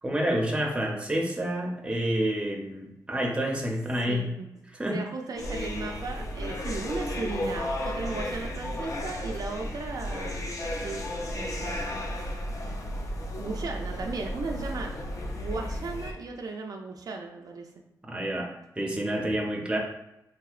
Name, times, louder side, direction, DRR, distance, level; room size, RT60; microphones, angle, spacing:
voice 1, 0.0-4.3 4.7-5.0 18.0-19.8, right 1 dB, 15° right, 0 dB, 0.6 m, -29 dB
voice 2, 4.1-4.5 4.8-10.4 10.8-12.3 13.4-14.9 15.3-17.7, right 3 dB, 65° right, 2 dB, 0.4 m, -36 dB
sound 1, 5.4-16.1, left 1 dB, 55° left, 0.5 m, -33 dB
3.9 x 2.8 x 2.4 m, 0.88 s
wide cardioid pair, 100°, 7 cm